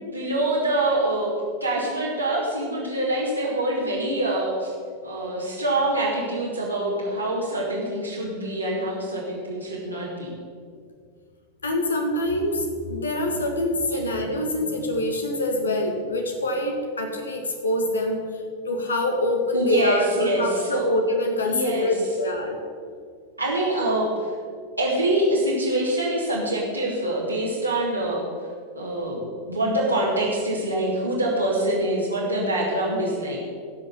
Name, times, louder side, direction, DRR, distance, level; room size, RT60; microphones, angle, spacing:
voice 1, 0.1-1.3 1.6-4.7 5.0-10.3 13.9-14.0 19.5-20.9 21.4-21.9 23.4-24.1 24.8-28.3 28.7-33.4, right 1 dB, 90° right, -7 dB, 2.6 m, -25 dB
voice 2, 11.6-18.3 18.6-20.1 20.3-22.6, left 1 dB, 75° left, 3 dB, 1.7 m, -25 dB
16.0 x 6.2 x 6.9 m, 2.1 s
figure-of-eight pair, 90°, 0 cm